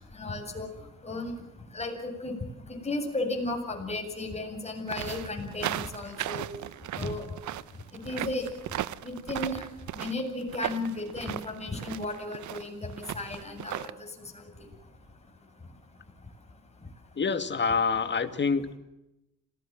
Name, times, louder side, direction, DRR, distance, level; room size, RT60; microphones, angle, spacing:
voice 1, 0.2-0.7 1.0-1.3 1.7-1.9 2.2-2.3 2.8-6.4 7.0-7.2 8.1-8.5 9.0-9.6 10.0-13.9, left 2 dB, 20° left, 2 dB, 7.7 m, -34 dB
sound 1, 4.9-13.9, right 13 dB, 70° right, 0.9 m, -36 dB
voice 2, 17.2-18.8, left 5 dB, 35° left, 10 dB, 2.2 m, -26 dB
27.0 x 18.5 x 7.7 m, 0.89 s
cardioid pair, 90°, 30 cm